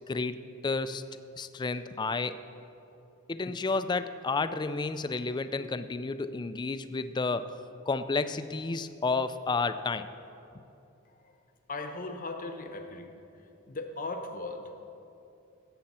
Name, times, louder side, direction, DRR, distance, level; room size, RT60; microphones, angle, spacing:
voice 1, 0.1-0.4 0.6-1.0 1.4-2.4 3.3-7.5 7.9-10.1, left 3 dB, 20° left, 11 dB, 0.3 m, -31 dB
voice 2, 11.7-13.1 13.7-14.7, left 2 dB, 40° left, 6 dB, 0.8 m, -37 dB
16.5 x 7.8 x 4.3 m, 2.9 s
head